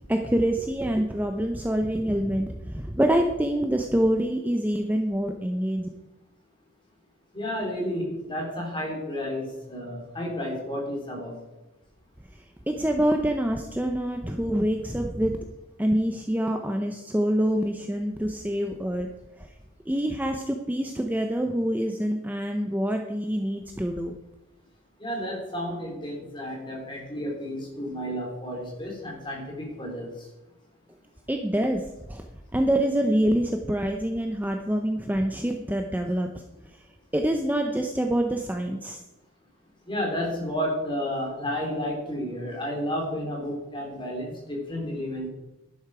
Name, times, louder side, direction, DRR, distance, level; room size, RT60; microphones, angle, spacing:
voice 1, 0.1-5.9 12.7-15.4 15.8-19.1 19.4-19.5 19.9-24.1 31.3-32.3 32.5-36.8 37.1-39.0, right 1 dB, 10° right, 4 dB, 0.6 m, -26 dB
voice 2, 7.3-11.4 25.0-30.1 39.9-45.3, equal, 25° left, -1 dB, 3.6 m, -31 dB
11.5 x 10.5 x 4.9 m, 1.0 s
head